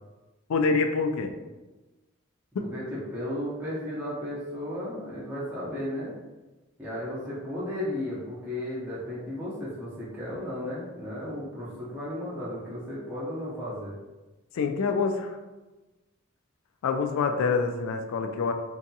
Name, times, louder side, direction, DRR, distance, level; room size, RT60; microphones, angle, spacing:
voice 1, 0.5-1.3 2.5-2.7 14.5-15.4 16.8-18.5, left 4 dB, 90° left, 6 dB, 0.3 m, -26 dB
voice 2, 2.6-6.1 6.8-13.9, left 1 dB, 10° right, -10 dB, 0.5 m, -34 dB
2.6 x 2.3 x 2.6 m, 1.1 s
head